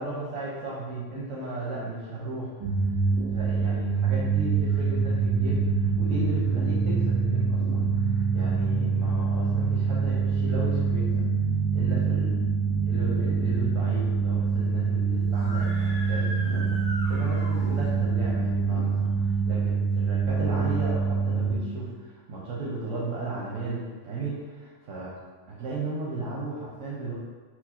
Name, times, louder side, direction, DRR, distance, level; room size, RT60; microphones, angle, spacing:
voice 1, 0.0-2.7 3.3-11.3 11.7-12.4 12.8-16.8 17.1-25.1 25.5-27.1, right 2 dB, 85° right, -6 dB, 1.1 m, -35 dB
sound 1, 2.6-21.6, right 5 dB, 60° right, 0.5 m, -25 dB
Screaming, 15.3-18.1, equal, 40° right, 1.2 m, -39 dB
4.6 x 2.1 x 4.1 m, 1.4 s
omnidirectional pair, 1.3 m